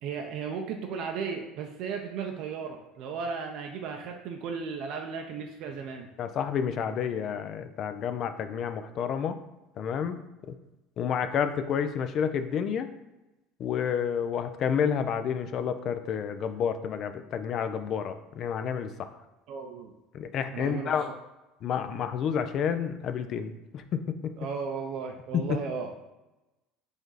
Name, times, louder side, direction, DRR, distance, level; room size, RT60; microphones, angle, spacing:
voice 1, 0.0-6.1 19.5-19.9 20.5-20.9 24.4-25.9, right 5 dB, 65° right, 3 dB, 0.5 m, -35 dB
voice 2, 6.2-9.4 9.8-10.2 11.0-12.9 13.6-19.1 20.1-21.1 21.6-24.0 25.3-25.6, left 7 dB, 50° left, 10 dB, 0.4 m, -30 dB
4.9 x 2.5 x 3.9 m, 1.0 s
supercardioid pair, 110°, 0 cm